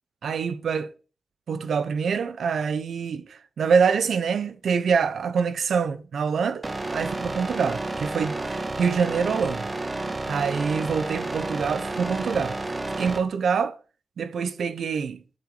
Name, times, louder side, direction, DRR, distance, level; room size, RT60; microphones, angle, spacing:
voice 1, 0.2-0.9 1.5-6.6 6.9-9.7 10.3-12.6 13.0-13.7 14.2-15.2, right 6 dB, 90° right, 1.1 m, -25 dB
sound 1, 6.6-13.2, right 2 dB, 25° right, 1.8 m, -31 dB
10.0 x 8.1 x 5.1 m
wide cardioid pair, 165°, 0 cm